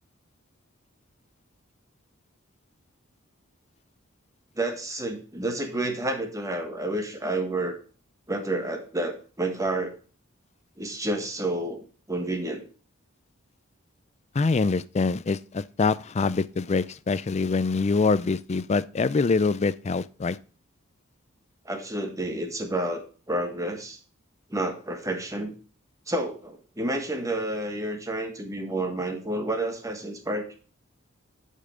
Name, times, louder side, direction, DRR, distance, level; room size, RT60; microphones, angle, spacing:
voice 1, 4.5-7.8 8.3-9.9 10.8-12.6 21.6-24.0 24.5-25.5 26.1-30.5, right 1 dB, 15° right, 1.6 m, -30 dB
voice 2, 14.3-20.4, left 4 dB, 35° left, 0.4 m, -24 dB
10.5 x 5.5 x 5.0 m
head